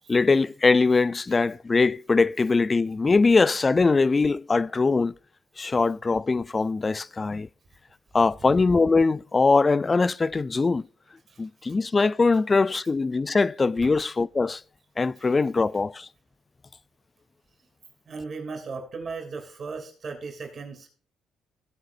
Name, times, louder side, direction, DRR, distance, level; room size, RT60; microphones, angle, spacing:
voice 1, 0.1-5.1 5.6-7.5 8.1-10.9 11.4-14.6 15.0-16.1, left 4 dB, 30° left, 0.4 m, -22 dB
voice 2, 15.2-15.5 18.1-20.9, right 4 dB, 50° right, 3.0 m, -37 dB
17.0 x 8.0 x 2.7 m
cardioid pair, 90°, 0 cm